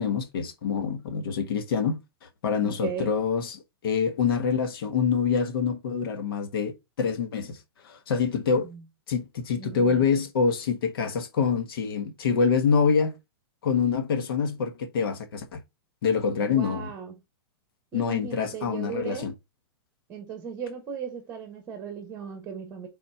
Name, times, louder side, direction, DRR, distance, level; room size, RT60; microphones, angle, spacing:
voice 1, 0.0-2.0 2.4-3.6 3.8-6.7 7.0-8.7 9.1-13.1 13.6-15.6 16.0-16.9 17.9-19.3, left 6 dB, 65° left, 1.3 m, -26 dB
voice 2, 2.6-3.1 8.6-8.8 9.5-10.2 16.4-17.2 17.9-19.3 20.1-22.9, right 6 dB, 20° right, 1.3 m, -37 dB
4.2 x 4.2 x 5.5 m
hypercardioid pair, 155°, 13 cm